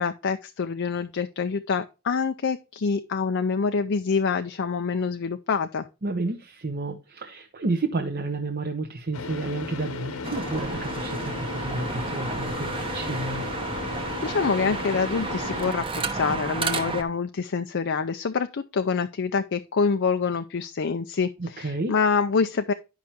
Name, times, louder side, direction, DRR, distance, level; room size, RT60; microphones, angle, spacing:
voice 1, 0.0-5.9 13.9-22.7, left 5 dB, 55° left, 0.5 m, -26 dB
voice 2, 6.0-13.4 21.4-21.9, right 3 dB, 45° right, 0.9 m, -31 dB
Car / Idling, 9.1-15.7, left 4 dB, 70° left, 1.1 m, -35 dB
sound 1, 10.2-17.0, right 3 dB, 25° right, 1.0 m, -31 dB
10.5 x 5.7 x 2.9 m
head